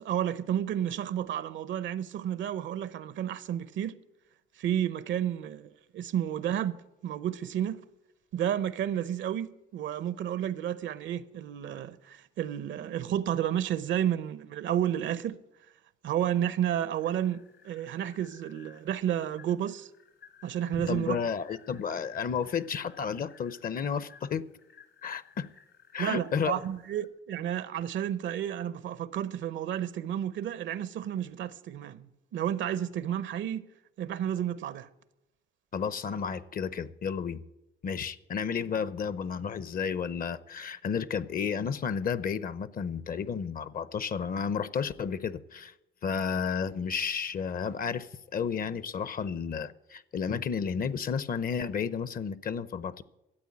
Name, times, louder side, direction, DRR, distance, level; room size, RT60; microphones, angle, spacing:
voice 1, 0.0-3.9 4.6-6.8 7.0-7.8 8.3-15.4 16.0-19.9 20.4-21.2 26.0-33.6 34.0-34.9, right 10 dB, 70° right, 0.7 m, -31 dB
sound 1, 16.7-27.1, left 7 dB, 75° left, 3.2 m, -59 dB
voice 2, 20.7-24.5 25.0-25.5 25.9-26.6 35.7-37.4 37.8-45.7 46.0-53.0, left 6 dB, 45° left, 0.7 m, -32 dB
13.0 x 8.4 x 8.5 m
cardioid pair, 90°, 20 cm